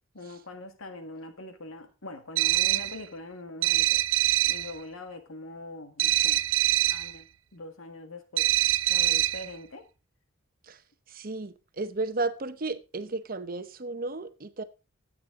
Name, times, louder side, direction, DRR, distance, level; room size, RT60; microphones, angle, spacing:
voice 1, 0.1-4.0 4.5-6.4 6.9-7.2 7.5-8.5 8.9-9.8, left 2 dB, 90° left, 1.7 m, -42 dB
sound 1, 2.3-3.0 3.6-4.7 6.0-7.1 8.4-9.5, right 16 dB, 65° right, 0.4 m, -24 dB
voice 2, 11.1-14.6, right 3 dB, 45° right, 0.9 m, -33 dB
12.5 x 8.5 x 3.7 m
head